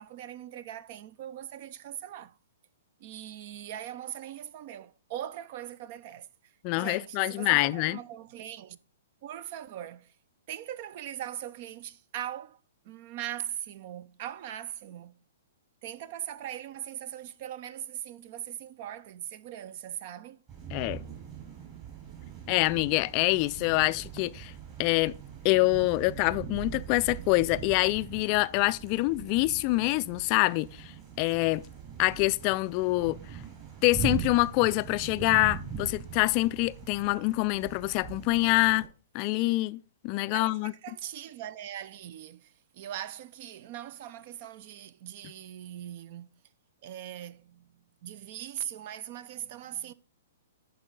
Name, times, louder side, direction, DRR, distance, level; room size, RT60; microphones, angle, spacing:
voice 1, 0.0-2.4 3.0-8.8 9.2-10.2 10.5-12.6 12.8-15.2 15.8-20.4 40.3-46.4 46.8-49.9, right 11 dB, 50° right, 0.5 m, -40 dB
voice 2, 6.6-8.0 20.7-21.0 22.5-24.5 24.8-25.1 25.4-31.6 32.0-33.2 33.8-38.9 39.1-40.7, left 21 dB, 40° left, 0.3 m, -26 dB
sound 1, 20.5-38.9, right 8 dB, 35° right, 4.2 m, -41 dB
10.5 x 4.8 x 3.8 m
hypercardioid pair, 125°, 0 cm